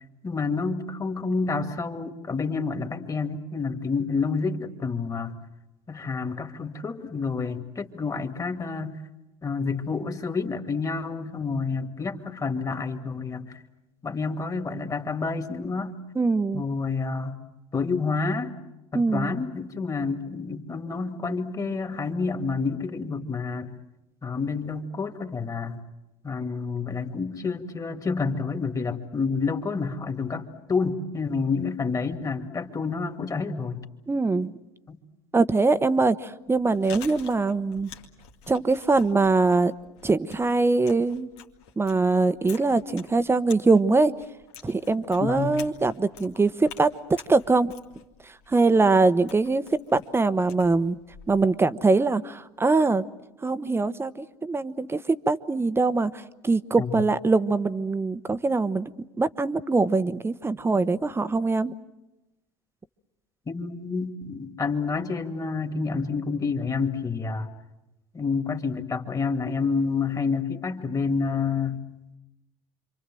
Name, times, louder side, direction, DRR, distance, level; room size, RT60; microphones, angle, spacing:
voice 1, 0.2-5.4 5.9-9.0 9.4-13.6 14.0-16.0 16.5-17.4 17.7-18.5 18.9-23.7 24.2-25.8 26.2-33.8 34.9-35.0 45.2-45.5 56.8-56.9 63.5-67.5 68.1-71.8, left 4 dB, 25° left, 6 dB, 2.6 m, -29 dB
voice 2, 16.2-16.6 18.9-19.3 34.1-34.5 35.3-37.9 38.5-39.7 40.0-41.3 41.8-44.1 44.6-47.7 48.5-51.0 51.3-53.1 53.4-58.9 59.2-61.7, right 3 dB, 15° right, 13 dB, 1.0 m, -23 dB
Chewing mastication, 36.5-51.6, left 8 dB, 80° left, 2.3 m, -49 dB
27.5 x 25.0 x 7.7 m, 0.99 s
hypercardioid pair, 85°, 14 cm